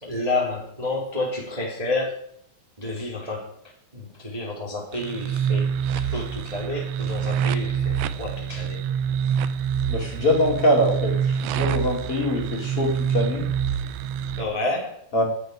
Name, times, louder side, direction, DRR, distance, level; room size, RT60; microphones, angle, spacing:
voice 1, 0.0-2.2 2.8-3.6 3.9-8.8 14.4-15.0, left 2 dB, 10° right, -3 dB, 2.2 m, -30 dB
sound 1, 4.9-14.4, right 8 dB, 80° right, 2.5 m, -26 dB
voice 2, 9.9-13.5 15.1-15.2, left 1 dB, 35° left, -1 dB, 3.4 m, -23 dB
11.0 x 7.1 x 9.7 m, 0.67 s
omnidirectional pair, 4.8 m